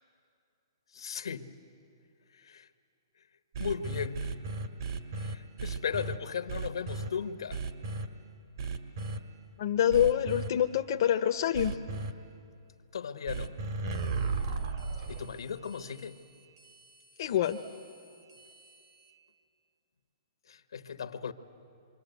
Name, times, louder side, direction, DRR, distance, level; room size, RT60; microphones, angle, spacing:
voice 1, 0.9-1.5 2.4-2.7 3.6-4.3 5.2-7.6 12.9-13.5 15.1-16.2 20.5-21.3, left 7 dB, 85° left, 1.2 m, -36 dB
sound 1, 3.5-6.2 6.5-7.1 7.5-8.1 8.6-9.2 9.9-10.5 11.5-12.1 13.3-19.1, right 3 dB, 55° right, 1.9 m, -36 dB
voice 2, 9.6-11.8 17.2-17.6, left 10 dB, 50° left, 0.8 m, -26 dB
27.5 x 25.0 x 8.1 m
hypercardioid pair, 155°, 3 cm